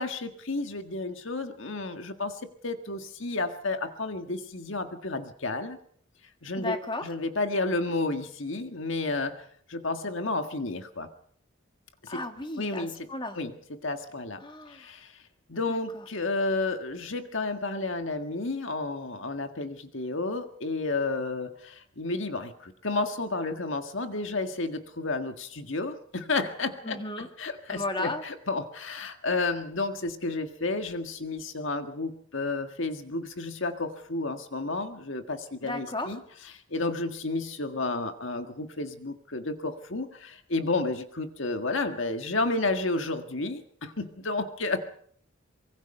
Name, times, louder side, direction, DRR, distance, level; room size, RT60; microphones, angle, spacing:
voice 1, 0.0-5.8 6.4-6.8 7.0-11.1 12.0-12.2 12.6-13.0 13.4-14.4 14.7-15.1 15.5-36.2 36.7-44.8, left 3 dB, 65° left, 7 dB, 1.7 m, -31 dB
voice 2, 6.6-7.1 12.1-13.4 14.4-14.9 15.7-16.1 26.8-27.3 27.7-28.2 35.6-36.2, left 2 dB, 25° left, 6 dB, 2.1 m, -34 dB
24.5 x 23.0 x 5.5 m, 0.62 s
head